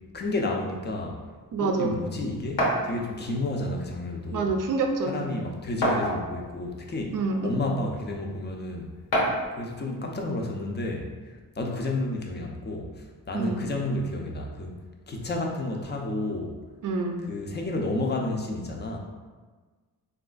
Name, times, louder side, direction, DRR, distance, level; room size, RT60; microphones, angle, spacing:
voice 1, 0.1-1.3 1.6-4.5 5.0-8.9 9.5-14.7 15.1-16.6 17.3-19.0, left 2 dB, 30° left, 1 dB, 0.5 m, -31 dB
voice 2, 1.5-2.0 4.3-5.3 7.1-7.6 13.3-13.6 16.8-17.2, right 3 dB, 60° right, 3 dB, 0.5 m, -27 dB
sound 1, 2.6-2.9 4.0-4.1 4.5-4.6 5.8-6.5 7.3-7.4 9.1-9.5, equal, 85° left, 0.8 m, -25 dB
3.5 x 2.3 x 2.4 m, 1.4 s
cardioid pair, 80°, 36 cm